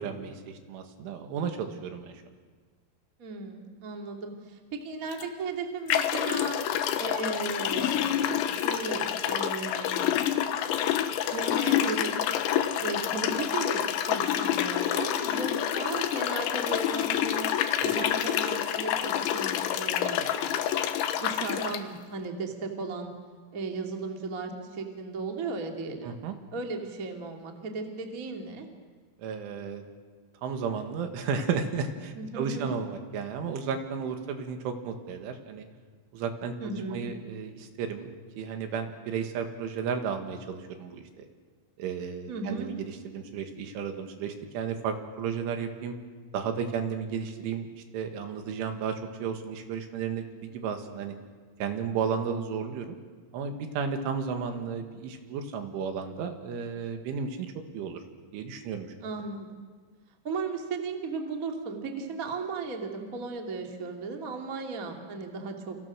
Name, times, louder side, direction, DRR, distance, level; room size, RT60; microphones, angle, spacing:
voice 1, 0.0-2.1 18.0-18.1 26.0-26.4 29.2-29.8 30.4-35.7 36.1-41.2 41.8-46.0 46.3-47.7 47.9-51.1 51.6-53.0 53.3-58.0 58.3-58.9, right 6 dB, 70° right, 6 dB, 4.2 m, -33 dB
voice 2, 3.2-6.6 7.0-10.2 11.3-12.1 12.8-17.4 17.8-20.5 21.1-23.1 23.5-26.1 26.5-28.7 32.1-32.7 36.6-37.0 42.3-42.7 59.0-59.5 60.2-65.8, right 4 dB, 35° right, 2 dB, 1.3 m, -36 dB
sound 1, 5.1-5.2 5.9-21.8, left 10 dB, 75° left, 3.3 m, -28 dB
29.0 x 29.0 x 6.3 m, 1.5 s
omnidirectional pair, 5.9 m